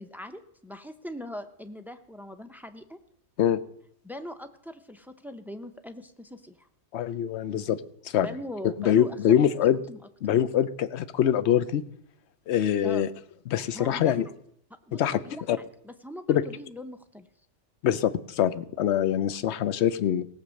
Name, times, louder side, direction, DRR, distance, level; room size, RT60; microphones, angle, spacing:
voice 1, 0.0-3.0 4.0-6.7 8.2-9.4 9.9-10.0 12.8-13.1 13.7-14.1 14.9-15.3 15.6-17.3, left 1 dB, ahead, 8 dB, 0.4 m, -41 dB
voice 2, 6.9-8.3 8.8-9.8 10.2-11.8 12.5-13.1 13.5-14.3 14.9-15.2 15.5-15.6 16.3-16.4 17.8-20.3, left 10 dB, 60° left, 14 dB, 0.9 m, -24 dB
17.5 x 7.0 x 6.4 m, 0.70 s
omnidirectional pair, 1.4 m